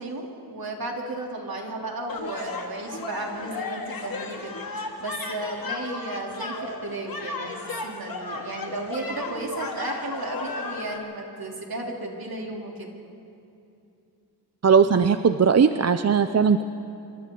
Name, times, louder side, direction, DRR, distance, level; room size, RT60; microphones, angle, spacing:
voice 1, 0.0-12.9, right 2 dB, 65° right, 0 dB, 3.3 m, -34 dB
sound 1, 2.1-11.0, left 3 dB, 60° left, 2.2 m, -34 dB
voice 2, 14.6-16.6, right 6 dB, 40° right, 10 dB, 0.6 m, -19 dB
26.5 x 26.0 x 3.9 m, 2.7 s
wide cardioid pair, 80°, 39 cm